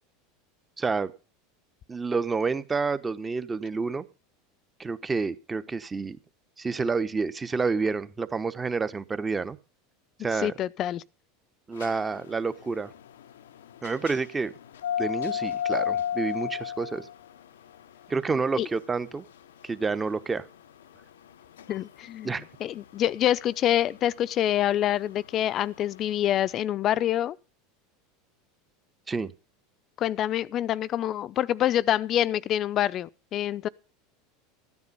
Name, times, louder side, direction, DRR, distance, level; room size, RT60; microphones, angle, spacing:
voice 1, 0.8-1.1 1.9-4.0 4.8-6.2 6.6-9.6 10.2-10.5 11.7-12.9 13.8-14.5 15.0-17.1 18.1-19.2 19.6-20.4 22.2-22.4 29.1-29.3, right 4 dB, 20° right, 1.0 m, -29 dB
voice 2, 10.4-11.0 18.6-18.7 21.7-22.3 22.6-27.4 30.0-33.7, left 11 dB, 45° left, 0.6 m, -26 dB
sound 1, 11.7-26.5, left 9 dB, 85° left, 0.7 m, -35 dB
13.5 x 9.6 x 5.4 m
hypercardioid pair, 90°, 0 cm